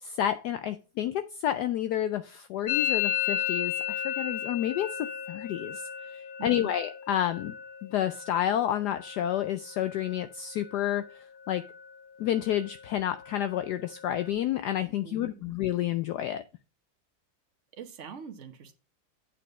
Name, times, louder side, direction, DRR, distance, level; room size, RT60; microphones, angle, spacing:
voice 1, 0.0-7.5 7.8-11.1 11.5-11.7 12.2-16.4, left 11 dB, 75° left, 1.0 m, -30 dB
Musical instrument, 2.7-10.3 10.6-11.2 11.4-12.0 12.3-14.3, left 11 dB, 50° left, 0.8 m, -35 dB
voice 2, 6.4-6.7 15.0-15.5 17.7-18.7, right 7 dB, 45° right, 1.4 m, -44 dB
8.6 x 5.2 x 5.2 m
omnidirectional pair, 2.0 m